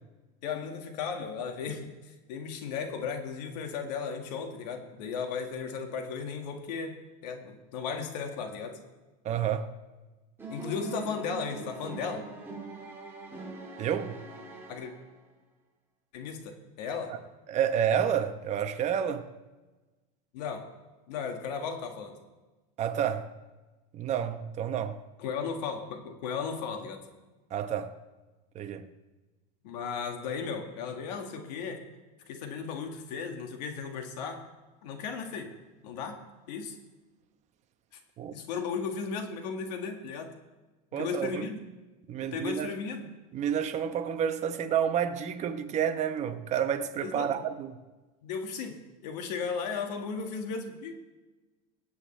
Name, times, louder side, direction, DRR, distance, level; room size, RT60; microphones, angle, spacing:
voice 1, 0.4-7.0 7.2-8.8 10.5-12.3 14.7-14.9 16.1-17.1 20.3-20.6 21.1-22.1 25.2-27.0 29.6-31.8 32.3-34.4 34.8-35.5 35.8-36.2 36.5-36.8 37.9-38.0 38.3-40.3 40.9-41.6 42.3-43.1 47.0-47.3 48.2-48.8 49.0-50.9, left 5 dB, 80° left, 1.9 m, -35 dB
voice 2, 9.2-9.7 13.8-14.2 17.5-19.2 22.8-23.2 23.9-25.0 27.5-27.9 28.5-28.8 38.2-38.3 40.9-41.4 42.1-42.7 43.3-47.8, right 9 dB, 35° right, 1.0 m, -29 dB
sound 1, 10.4-15.3, right 3 dB, 10° right, 2.3 m, -43 dB
23.5 x 8.3 x 3.3 m
supercardioid pair, 145°, 21 cm